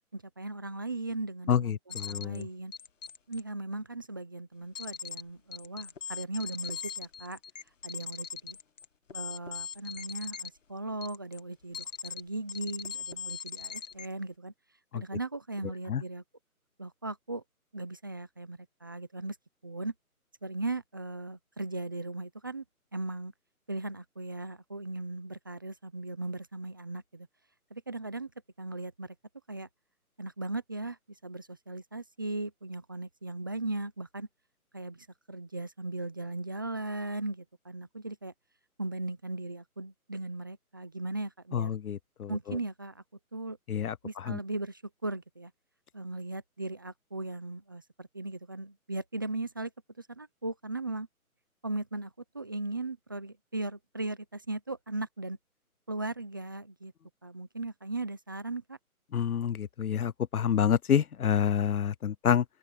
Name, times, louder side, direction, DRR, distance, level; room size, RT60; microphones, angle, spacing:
voice 1, 0.1-2.7 3.3-7.4 7.8-8.6 9.1-14.5 14.9-16.2 16.8-17.4 17.7-19.4 19.6-19.9 20.4-22.6 22.9-23.3 23.7-27.3 27.7-28.3 28.6-29.2 29.5-29.7 30.2-31.0 31.2-34.3 34.7-38.3 38.8-41.7 42.3-43.0 43.3-43.6 44.0-45.5 45.9-49.7 50.0-51.1 51.6-55.4 55.9-56.9 57.2-58.8, right 2 dB, 15° right, 0.7 m, -38 dB
voice 2, 1.5-2.5 14.9-15.0 15.9-16.0 41.5-42.6 43.7-44.4 59.1-62.4, left 8 dB, 75° left, 0.8 m, -28 dB
sound 1, 1.9-2.4 2.7-3.4 4.8-5.2 5.5-10.5 11.0-11.4 11.7-12.2 12.5-14.1, left 6 dB, 55° left, 2.5 m, -40 dB
open air
hypercardioid pair, 160°, 44 cm